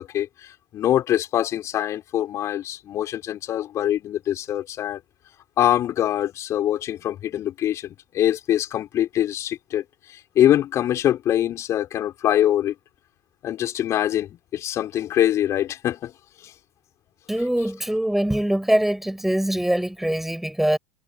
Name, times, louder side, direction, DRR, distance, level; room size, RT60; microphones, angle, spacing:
voice 1, 0.0-5.0 5.6-12.7 13.4-16.1 16.4-16.5, left 11 dB, 45° left, 4.7 m, -24 dB
voice 2, 17.3-20.8, right 1 dB, 5° right, 7.2 m, -23 dB
hypercardioid pair, 85°, 7 cm